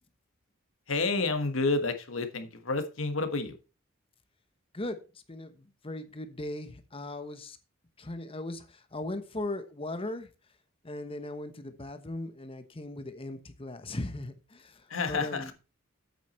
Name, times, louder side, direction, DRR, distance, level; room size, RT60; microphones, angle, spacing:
voice 1, 0.9-3.6 14.9-15.5, left 3 dB, 80° left, 8 dB, 1.4 m, -29 dB
voice 2, 5.3-7.6 8.0-10.3 10.8-15.5, left 1 dB, 30° left, 9 dB, 1.0 m, -38 dB
8.3 x 8.1 x 4.3 m, 0.31 s
head